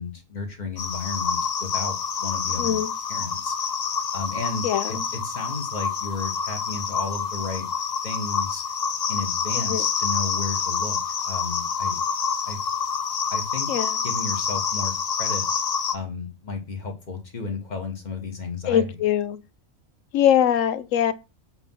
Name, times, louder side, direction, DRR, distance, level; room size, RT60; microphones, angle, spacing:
voice 1, 0.0-2.8 3.1-3.7 4.1-5.0 5.2-7.7 8.0-8.6 9.1-11.0 11.2-12.0 12.4-12.6 13.3-13.7 14.0-14.9 15.2-15.4 15.9-18.9, left 4 dB, 35° left, 1.5 m, -33 dB
sound 1, 0.8-16.0, left 6 dB, 50° left, 0.5 m, -27 dB
voice 2, 2.6-2.9 4.6-5.0 9.5-9.9 13.7-14.0 18.7-19.4 20.1-21.1, left 10 dB, 75° left, 1.0 m, -22 dB
7.9 x 3.0 x 5.6 m
omnidirectional pair, 1.4 m